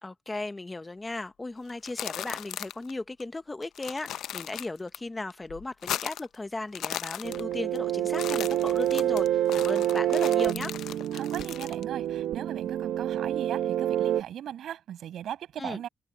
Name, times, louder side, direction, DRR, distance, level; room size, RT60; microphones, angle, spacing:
voice 1, 0.0-10.7 15.6-15.8, left 2 dB, 15° left, 0.6 m, -36 dB
sound 1, 1.7-2.9 3.2-3.3 3.6-5.0 5.3-6.4 6.6-7.8 8.1-11.8, left 12 dB, 85° left, 0.5 m, -37 dB
sound 2, 7.2-14.2, right 12 dB, 85° right, 0.9 m, -27 dB
voice 2, 11.1-15.9, right 10 dB, 65° right, 6.7 m, -38 dB
cardioid pair, 170°, 0 cm